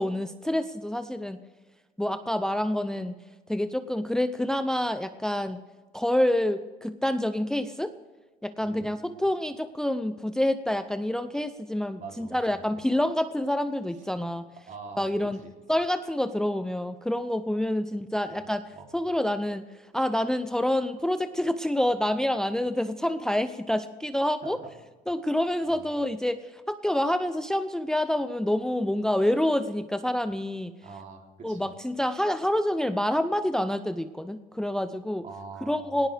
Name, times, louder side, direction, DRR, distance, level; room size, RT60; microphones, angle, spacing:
voice 1, 0.0-1.4 2.0-3.2 3.5-5.6 5.9-7.9 8.4-14.4 15.0-15.4 15.7-18.6 18.9-19.7 19.9-24.6 25.1-30.7 31.4-35.2 35.6-36.1, left 1 dB, 5° left, 10 dB, 0.6 m, -27 dB
voice 2, 8.6-9.0 12.0-12.6 14.7-15.1 15.4-15.5 18.3-18.4 18.7-18.9 24.4-24.7 25.7-25.9 30.8-31.7 35.2-36.1, right 4 dB, 50° right, 2 dB, 3.2 m, -44 dB
18.5 x 18.0 x 3.5 m, 1.3 s
cardioid pair, 110°, 17 cm